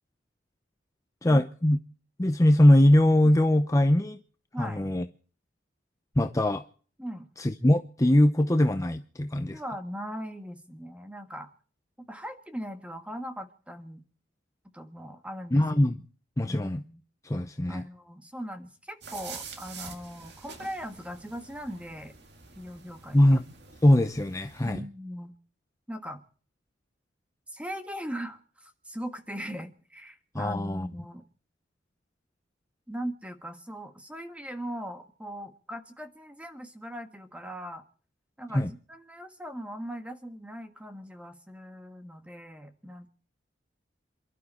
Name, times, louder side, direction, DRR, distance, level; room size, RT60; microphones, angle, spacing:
voice 1, 1.2-1.8 2.2-4.2 4.6-5.1 6.2-6.6 7.4-9.6 15.5-16.0 16.4-16.8 17.2-17.8 23.1-23.5 23.8-24.8 30.3-30.9 38.5-38.7, left 1 dB, 15° left, 0.7 m, -22 dB
voice 2, 9.5-11.5 12.0-14.0 14.7-15.6 16.5-17.0 17.7-22.2 22.6-23.2 24.6-25.3 25.9-26.2 27.5-31.3 32.9-37.8 38.4-43.1, equal, 5° right, 1.5 m, -39 dB
sound 1, 19.0-24.7, right 5 dB, 60° right, 2.0 m, -47 dB
28.0 x 12.0 x 4.3 m
head